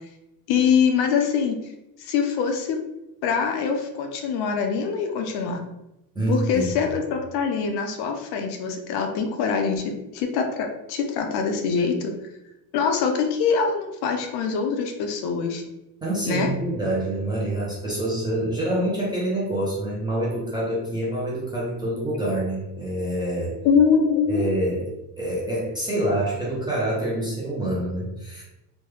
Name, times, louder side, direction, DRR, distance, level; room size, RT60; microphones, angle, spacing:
voice 1, 0.5-1.6 2.0-2.8 3.2-5.6 6.3-12.2 12.7-15.6 16.3-16.5 23.6-24.5, left 6 dB, 60° left, 4 dB, 0.5 m, -23 dB
voice 2, 6.2-6.7 16.0-23.6 24.3-24.9 25.2-28.4, right 1 dB, 10° right, -7 dB, 0.4 m, -26 dB
3.1 x 2.1 x 3.2 m, 0.91 s
cardioid pair, 170°, 44 cm